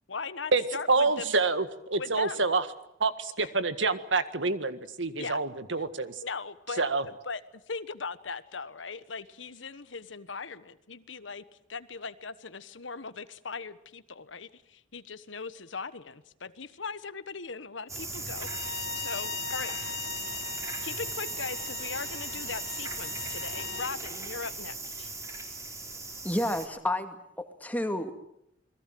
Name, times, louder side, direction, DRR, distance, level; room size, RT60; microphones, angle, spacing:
voice 1, 0.1-1.4 2.0-2.4 3.4-3.5 5.2-5.4 6.2-7.4 7.7-11.4 11.7-20.0 20.8-25.1, left 4 dB, 90° left, 13 dB, 1.4 m, -39 dB
voice 2, 0.9-2.6 3.0-6.1 6.8-7.0, right 3 dB, 85° right, 11 dB, 1.8 m, -27 dB
sound 1, 17.9-26.7, right 3 dB, 15° right, 3.8 m, -38 dB
Bowed string instrument, 18.4-23.9, left 7 dB, 70° left, 1.0 m, -40 dB
voice 3, 26.2-28.1, left 1 dB, 10° left, 6 dB, 2.4 m, -30 dB
28.0 x 21.5 x 7.8 m, 0.78 s
head